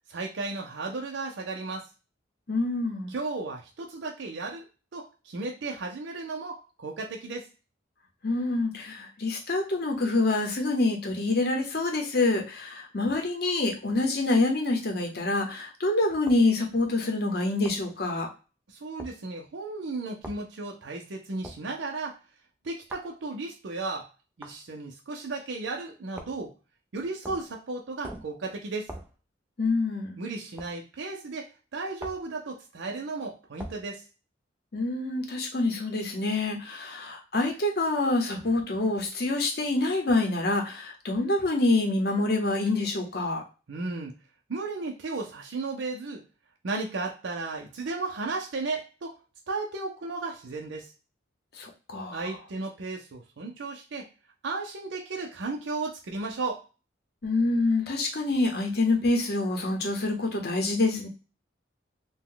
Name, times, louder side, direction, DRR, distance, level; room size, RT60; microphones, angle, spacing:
voice 1, 0.1-1.9 3.1-7.5 18.7-22.2 22.6-24.1 24.4-26.5 26.9-28.9 30.2-34.0 43.7-44.1 44.5-46.3 46.6-49.2 49.5-50.9 52.1-54.1 54.4-56.6, right 3 dB, 70° right, 1 dB, 0.5 m, -34 dB
voice 2, 2.5-3.1 8.2-18.3 29.6-30.2 34.7-43.4 51.6-52.2 57.2-61.1, left 2 dB, 55° left, 2 dB, 0.8 m, -26 dB
sound 1, 16.3-16.5 17.6-17.9 19.0-19.2 20.2-20.4 21.4-21.7 22.9-23.1 24.4-24.6 26.1-26.5 27.2-27.5 28.0-28.4 28.9-29.1 30.6-30.7 32.0-32.3 33.6-33.8, right 1 dB, 10° right, 0.4 m, -42 dB
2.6 x 2.1 x 3.7 m, 0.32 s
head